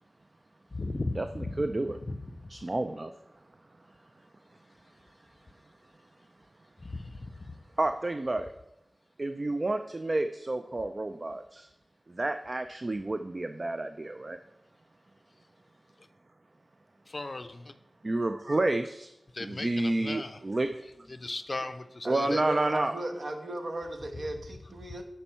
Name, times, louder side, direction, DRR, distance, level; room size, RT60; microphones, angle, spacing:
voice 1, 0.7-1.6 2.1-2.5 6.8-7.5 16.0-16.1 17.1-17.7 19.3-20.4 21.1-22.4, left 2 dB, 40° left, 10 dB, 0.5 m, -37 dB
voice 2, 1.6-2.0 2.5-3.1 7.8-8.5 9.2-11.7 12.1-14.4 18.0-19.1 19.4-20.7 22.1-22.9, right 2 dB, 35° right, 8 dB, 0.3 m, -30 dB
voice 3, 22.0-25.0, right 1 dB, 60° right, 4 dB, 1.0 m, -36 dB
7.2 x 4.4 x 5.5 m, 0.90 s
wide cardioid pair, 95°, 0 cm